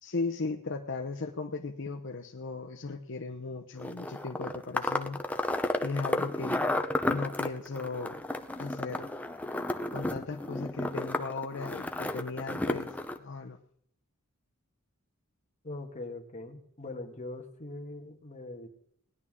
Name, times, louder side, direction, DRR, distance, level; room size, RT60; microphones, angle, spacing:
voice 1, 0.0-5.2 5.8-6.7 7.1-8.1 8.6-9.1 9.9-12.9 13.2-13.6, left 3 dB, 60° left, 3 dB, 0.8 m, -36 dB
sound 1, 3.8-13.2, left 1 dB, 5° left, 0.6 m, -32 dB
voice 2, 15.6-18.7, left 2 dB, 35° left, 2 dB, 1.6 m, -41 dB
19.0 x 11.0 x 3.7 m, 0.70 s
head